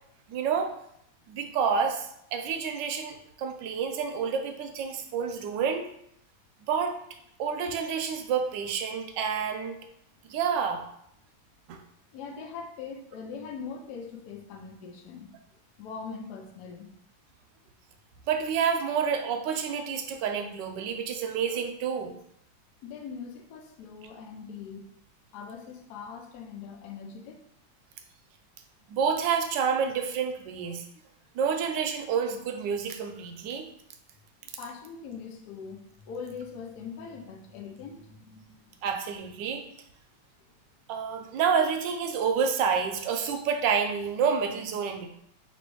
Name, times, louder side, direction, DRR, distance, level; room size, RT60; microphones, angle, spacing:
voice 1, 0.3-0.7 1.3-5.9 6.6-7.0 7.4-9.8 10.3-10.8 11.7-11.8 18.3-22.1 28.9-30.8 31.3-33.7 38.8-39.6 40.9-45.1, right 6 dB, 75° right, 5 dB, 1.1 m, -28 dB
voice 2, 12.1-15.3 15.8-16.9 22.8-24.9 25.3-27.4 34.6-38.8, left 5 dB, 65° left, 2 dB, 1.1 m, -41 dB
3.1 x 3.0 x 4.6 m, 0.73 s
omnidirectional pair, 2.2 m